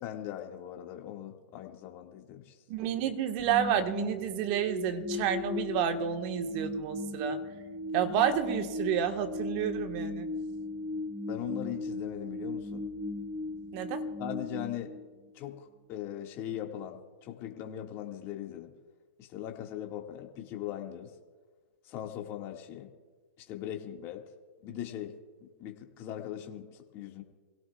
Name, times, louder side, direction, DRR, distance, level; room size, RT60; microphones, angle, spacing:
voice 1, 0.0-2.6 11.3-12.8 14.2-14.9 15.3-18.7 19.2-21.1 21.8-22.9 23.4-24.2 24.6-25.1 25.6-27.2, left 11 dB, 35° left, 2 dB, 2.0 m, -40 dB
voice 2, 2.7-7.4 7.9-10.3 13.7-14.0, right 9 dB, 45° right, 6 dB, 1.5 m, -30 dB
sound 1, 3.4-15.5, left 2 dB, 20° right, 1.6 m, -37 dB
26.5 x 17.0 x 2.4 m, 1.4 s
hypercardioid pair, 125°, 7 cm